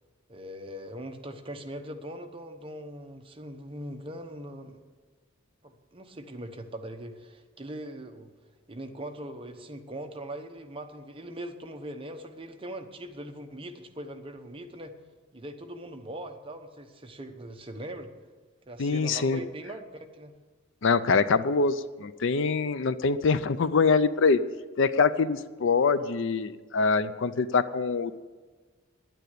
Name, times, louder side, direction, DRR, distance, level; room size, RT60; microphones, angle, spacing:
voice 1, 0.3-4.8 5.6-8.3 8.7-14.9 15.3-18.1 18.7-20.3, right 1 dB, 25° right, 5 dB, 0.9 m, -41 dB
voice 2, 18.8-19.4 20.8-24.4 24.8-28.2, left 4 dB, 65° left, 14 dB, 0.5 m, -24 dB
10.5 x 9.3 x 8.3 m, 1.3 s
head